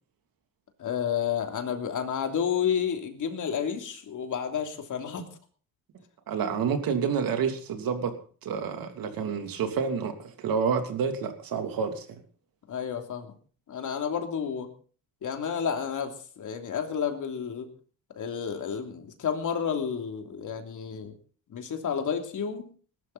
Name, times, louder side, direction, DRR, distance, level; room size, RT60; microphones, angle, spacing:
voice 1, 0.8-5.2 12.7-13.3 13.7-14.7 15.2-17.7 18.2-21.1 21.5-22.7, left 7 dB, 60° left, 4 dB, 3.1 m, -31 dB
voice 2, 6.3-8.1 8.4-12.2, right 6 dB, 75° right, 6 dB, 3.0 m, -29 dB
20.0 x 12.5 x 4.2 m, 0.42 s
cardioid pair, 115°, 35 cm